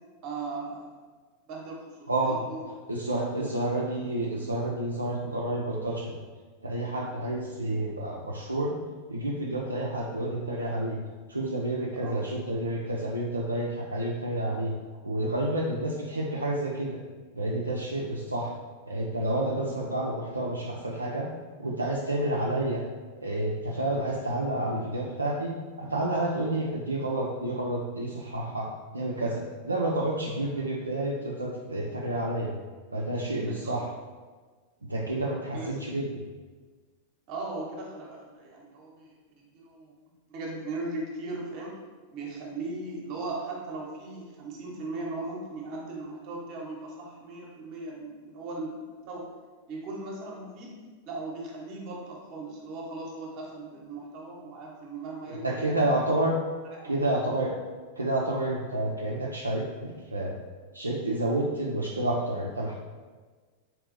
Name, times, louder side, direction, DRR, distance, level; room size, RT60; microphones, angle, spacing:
voice 1, 0.2-1.0 1.5-2.7 3.4-3.5 12.0-12.1 33.5-33.8 35.5-35.7 37.3-39.9 40.3-41.7 42.1-49.3 49.7-50.8 51.1-55.9 56.6-57.1, right 2 dB, 40° right, -2 dB, 0.8 m, -38 dB
voice 2, 2.1-2.4 2.9-6.1 6.6-8.8 9.1-11.0 11.3-14.7 15.0-17.0 17.3-18.5 18.9-21.3 21.6-22.9 23.2-25.5 25.8-32.5 32.9-33.9 34.9-36.2 55.3-56.3 56.8-57.5 58.0-60.4 60.7-62.7, right 1 dB, 80° right, -3 dB, 0.3 m, -29 dB
4.1 x 2.7 x 2.5 m, 1.4 s
figure-of-eight pair, 90°, 0 cm